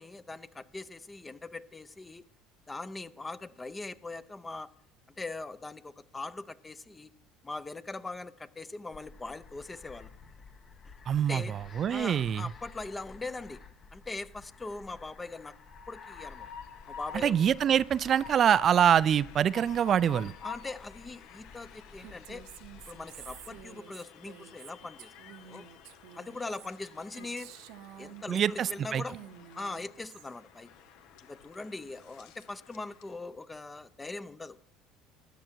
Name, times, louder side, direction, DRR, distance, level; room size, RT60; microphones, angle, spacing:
voice 1, 0.0-2.2 2.7-4.7 5.2-7.1 7.4-10.1 10.8-10.9 11.3-11.5 11.9-13.6 13.9-15.6 15.9-16.5 16.9-17.5 20.4-22.5 22.9-25.7 26.1-27.5 28.0-29.2 29.5-30.7 31.3-34.6, left 3 dB, 20° left, 0.6 m, -41 dB
sound 1, 8.9-23.7, left 4 dB, 40° left, 1.1 m, -53 dB
voice 2, 11.1-11.4 11.8-12.4 17.2-20.3 28.3-29.0, right 9 dB, 45° right, 0.3 m, -25 dB
Train, 15.4-33.2, left 8 dB, 70° left, 0.9 m, -50 dB
Female speech woman speaking, 22.0-28.8 29.1-30.4, right 12 dB, 75° right, 0.8 m, -50 dB
13.0 x 9.3 x 4.5 m
supercardioid pair, 85°, 0 cm